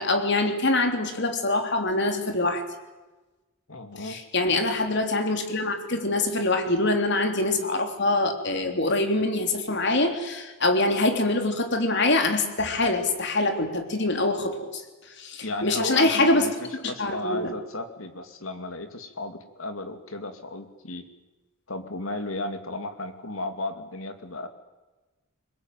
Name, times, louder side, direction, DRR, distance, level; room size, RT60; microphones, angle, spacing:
voice 1, 0.0-2.6 4.0-14.8 15.2-16.5 16.8-17.5, left 2 dB, 60° left, 6 dB, 3.3 m, -24 dB
voice 2, 3.7-4.2 15.4-21.1 21.7-24.5, left 2 dB, 85° left, 8 dB, 2.6 m, -34 dB
23.5 x 21.0 x 9.3 m, 1.2 s
head